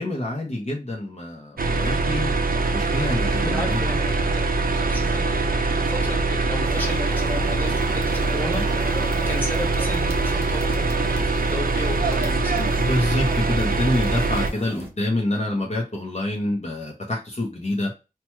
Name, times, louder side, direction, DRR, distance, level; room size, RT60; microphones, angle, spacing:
voice 1, 0.0-2.3 2.7-3.8 12.5-17.9, left 1 dB, 50° left, -1 dB, 0.9 m, -27 dB
sound 1, 1.6-14.5, right 3 dB, 90° right, 0.5 m, -23 dB
voice 2, 3.4-8.7 9.3-12.5, left 1 dB, 15° left, 0 dB, 1.4 m, -34 dB
sound 2, 6.6-14.9, equal, 15° right, 0.9 m, -39 dB
3.0 x 2.3 x 2.8 m, 0.29 s
wide cardioid pair, 65°, 15 cm